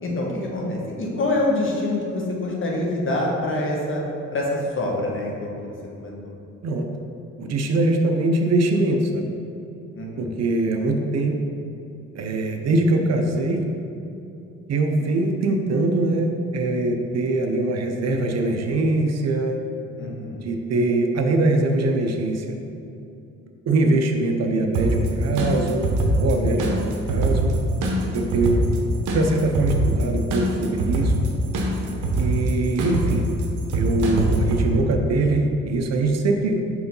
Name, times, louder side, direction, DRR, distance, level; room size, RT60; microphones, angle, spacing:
voice 1, 0.0-4.0 4.3-6.1 9.9-10.3 20.0-20.4 26.4-26.5 31.8-32.3, left 2 dB, 40° left, -2 dB, 1.3 m, -26 dB
voice 2, 7.4-9.3 10.2-11.3 12.1-13.7 14.7-19.6 20.4-22.6 23.7-25.9 26.2-27.5 28.1-28.6 29.1-31.1 32.2-33.3 33.7-36.6, right 2 dB, 60° right, 4 dB, 0.7 m, -22 dB
sound 1, 24.7-34.6, right 1 dB, 80° right, 0.9 m, -23 dB
4.7 x 3.8 x 5.4 m, 2.7 s
cardioid pair, 90°, 30 cm